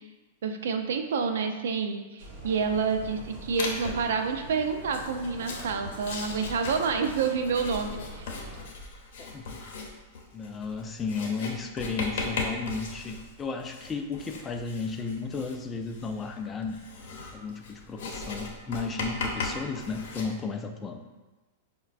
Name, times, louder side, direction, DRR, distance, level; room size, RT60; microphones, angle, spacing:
voice 1, 0.4-8.4, right 5 dB, 80° right, 6 dB, 0.4 m, -28 dB
sound 1, 2.2-8.7, right 1 dB, 50° right, 1.0 m, -44 dB
Writing, 3.6-4.1 4.8-20.2, left 3 dB, 70° left, 0.7 m, -37 dB
voice 2, 9.2-9.6 10.3-16.8 17.3-21.0, left 4 dB, 15° left, 5 dB, 0.3 m, -34 dB
5.6 x 2.2 x 2.4 m, 1.2 s
supercardioid pair, 145°, 0 cm